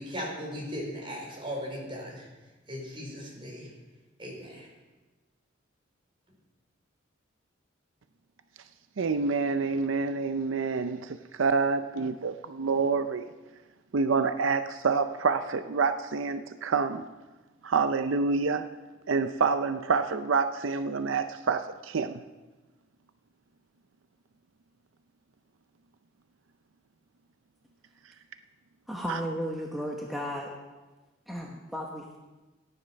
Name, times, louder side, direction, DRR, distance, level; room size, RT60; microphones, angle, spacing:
voice 1, 0.0-2.3 2.7-3.7 4.2-4.7, equal, 25° right, -3 dB, 4.4 m, -37 dB
voice 2, 9.0-13.3 13.9-17.0 17.6-18.7 19.1-22.2 29.1-29.2, right 4 dB, 80° right, 10 dB, 0.5 m, -27 dB
voice 3, 28.9-30.5 31.3-32.2, equal, ahead, -2 dB, 1.1 m, -34 dB
14.0 x 9.9 x 5.7 m, 1.2 s
head